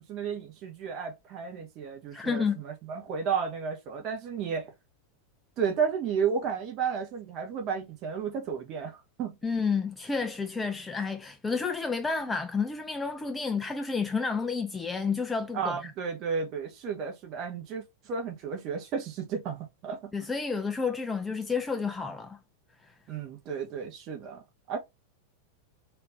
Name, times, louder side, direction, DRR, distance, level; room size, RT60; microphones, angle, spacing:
voice 1, 0.1-4.7 5.6-9.3 15.5-20.1 23.1-24.4 24.7-24.8, right 6 dB, 35° right, 0.9 m, -33 dB
voice 2, 2.1-2.6 9.4-15.9 20.1-22.4 22.8-22.9, left 5 dB, 10° left, 0.4 m, -30 dB
3.6 x 2.5 x 2.6 m
figure-of-eight pair, 90°, 0 cm